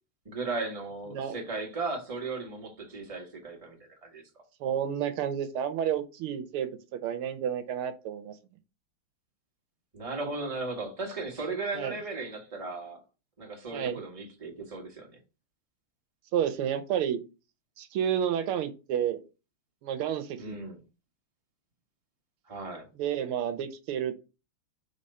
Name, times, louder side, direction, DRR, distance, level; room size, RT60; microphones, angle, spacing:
voice 1, 0.2-4.2 9.9-13.0 13.4-15.1 20.4-20.8 22.5-22.9, right 3 dB, 20° right, 1.5 m, -36 dB
voice 2, 4.6-8.3 11.7-12.0 13.7-14.0 16.3-17.2 17.8-19.2 19.8-20.6 23.0-24.2, right 9 dB, 80° right, 1.6 m, -30 dB
5.3 x 3.5 x 5.4 m
omnidirectional pair, 2.4 m